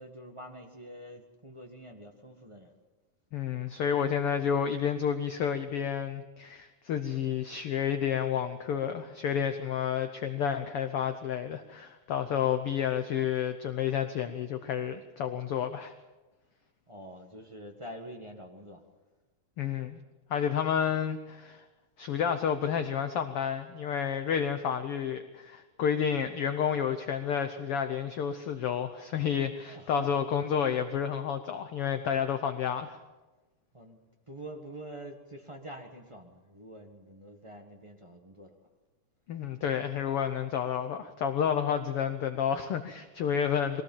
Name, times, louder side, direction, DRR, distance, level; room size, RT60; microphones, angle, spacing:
voice 1, 0.0-2.7 16.9-18.8 29.6-30.1 33.7-38.6, right 1 dB, 35° right, 2 dB, 0.4 m, -46 dB
voice 2, 3.3-15.9 19.6-20.0 20.3-21.6 22.0-33.0 39.3-43.8, left 8 dB, 70° left, 9 dB, 1.4 m, -30 dB
22.5 x 18.0 x 7.4 m, 1.2 s
omnidirectional pair, 3.6 m